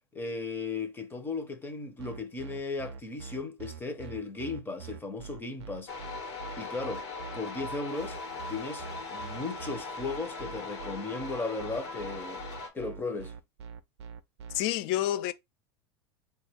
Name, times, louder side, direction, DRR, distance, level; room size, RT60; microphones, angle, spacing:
voice 1, 0.1-5.9 6.6-7.0 7.3-8.2 8.5-8.9 9.1-12.4 12.7-13.4, left 3 dB, 15° left, 0.6 m, -36 dB
sound 1, 2.0-14.6, right 6 dB, 85° right, 0.4 m, -44 dB
sound 2, 5.9-12.7, left 3 dB, 80° left, 1.1 m, -40 dB
voice 2, 14.5-15.3, left 13 dB, 60° left, 0.4 m, -28 dB
3.7 x 2.3 x 3.2 m
supercardioid pair, 115°, 14 cm